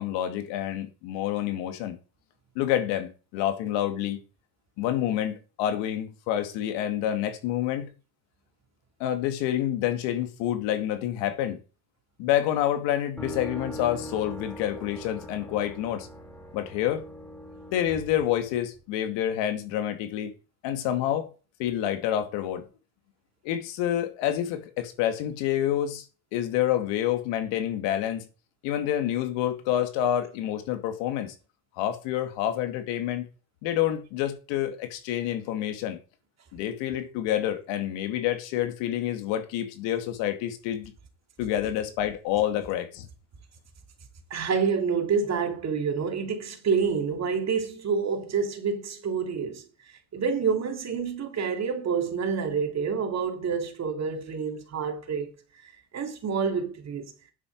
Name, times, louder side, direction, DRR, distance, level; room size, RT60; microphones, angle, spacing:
voice 1, 0.0-2.0 2.6-4.2 4.8-7.9 9.0-11.6 12.2-16.1 16.5-17.0 17.7-20.3 20.6-21.3 21.6-22.6 23.4-26.0 26.3-28.2 28.6-31.3 31.8-33.3 33.6-36.0 36.5-40.9 41.4-43.1, left 11 dB, 80° left, 2.3 m, -28 dB
sound 1, 13.2-19.1, equal, 5° left, 2.0 m, -41 dB
voice 2, 44.3-49.6 50.1-55.3 55.6-57.1, right 5 dB, 35° right, 2.8 m, -28 dB
9.7 x 7.7 x 4.7 m
cardioid pair, 120°, 43 cm